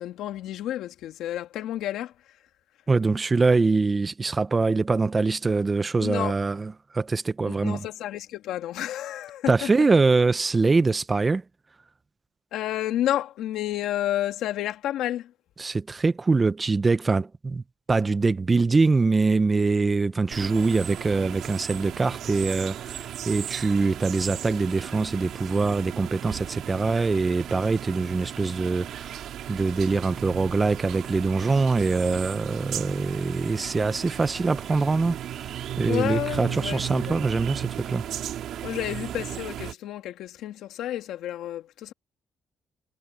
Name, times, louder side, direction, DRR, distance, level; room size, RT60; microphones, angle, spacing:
voice 1, 0.0-2.1 6.0-6.3 7.5-9.7 12.5-15.3 35.9-37.3 38.6-41.9, left 12 dB, 85° left, 2.1 m, -30 dB
voice 2, 2.9-7.9 9.5-11.4 15.6-17.6 17.9-35.5 35.8-38.0, right 3 dB, 25° right, 0.8 m, -24 dB
sound 1, 20.3-39.7, right 11 dB, 75° right, 3.5 m, -36 dB
cardioid pair, 90°, 0 cm